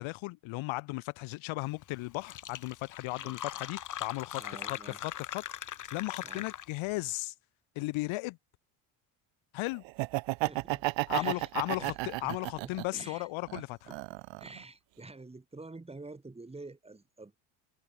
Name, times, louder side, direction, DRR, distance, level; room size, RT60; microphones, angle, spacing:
voice 1, 0.0-5.4 5.9-7.3 7.7-8.4 9.5-9.8 11.1-13.9, left 22 dB, 75° left, 1.7 m, -36 dB
Fill (with liquid), 1.8-1.9 2.1-6.9, left 11 dB, 40° left, 1.6 m, -41 dB
voice 2, 4.3-5.0 6.2-6.5 10.5-10.8 11.1-11.5 11.8-12.0 12.2-13.3 13.9-14.0 14.4-17.4, right 3 dB, 10° right, 5.1 m, -48 dB
Laughter, 9.9-13.0 13.5-14.6, right 23 dB, 70° right, 0.7 m, -33 dB
cardioid pair, 130°, 47 cm